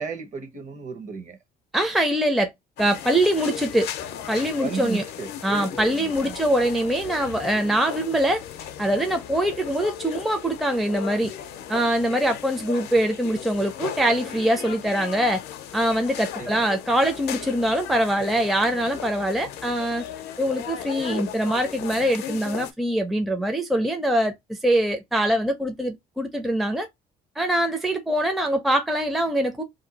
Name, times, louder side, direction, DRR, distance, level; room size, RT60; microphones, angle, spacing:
voice 1, 0.0-1.4 4.6-6.5 16.4-16.6, right 5 dB, 45° right, 1.0 m, -34 dB
voice 2, 1.7-2.5 2.8-3.9 4.3-5.0 5.4-8.4 8.8-11.3 11.7-15.4 15.7-20.1 20.4-26.9 27.4-29.6, right 1 dB, ahead, 0.5 m, -23 dB
sound 1, 2.8-22.7, left 9 dB, 75° left, 0.6 m, -36 dB
2.6 x 2.3 x 3.9 m
cardioid pair, 110°, 17 cm